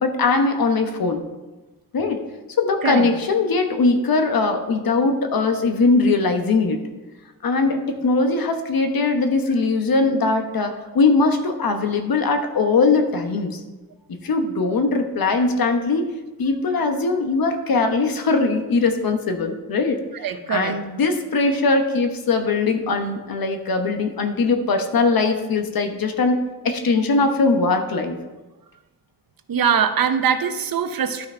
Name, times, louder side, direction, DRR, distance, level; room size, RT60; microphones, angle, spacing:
voice 1, 0.0-1.2 1.9-2.2 2.6-6.8 7.4-13.6 14.2-16.1 16.4-26.4 26.6-28.2, left 3 dB, 85° left, 6 dB, 1.1 m, -20 dB
voice 2, 20.2-20.8 29.5-31.3, right 7 dB, 80° right, 9 dB, 0.8 m, -22 dB
12.0 x 5.8 x 4.4 m, 1.1 s
wide cardioid pair, 105°, 34 cm